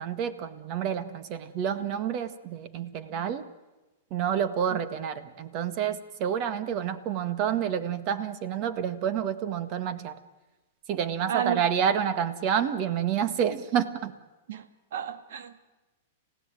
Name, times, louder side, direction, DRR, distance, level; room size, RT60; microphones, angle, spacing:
voice 1, 0.0-3.4 4.1-10.2 10.9-14.1, right 8 dB, 40° right, 12 dB, 1.8 m, -29 dB
voice 2, 11.3-11.6 14.5-14.7 14.9-15.6, right 8 dB, 70° right, 11 dB, 1.9 m, -31 dB
27.0 x 16.5 x 9.2 m, 1.1 s
hypercardioid pair, 135°, 0 cm